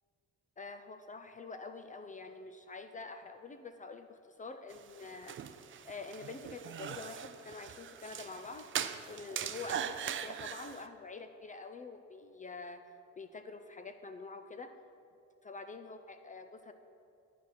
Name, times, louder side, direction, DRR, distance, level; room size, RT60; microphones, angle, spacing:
voice 1, 0.6-5.4 5.8-8.7 9.1-12.8 13.2-14.8 15.4-16.7, left 4 dB, 25° left, 8 dB, 0.4 m, -46 dB
sound 1, 4.7-10.9, right 9 dB, 40° right, 0.4 m, -41 dB
10.0 x 4.2 x 6.3 m, 2.6 s
cardioid pair, 90°, 30 cm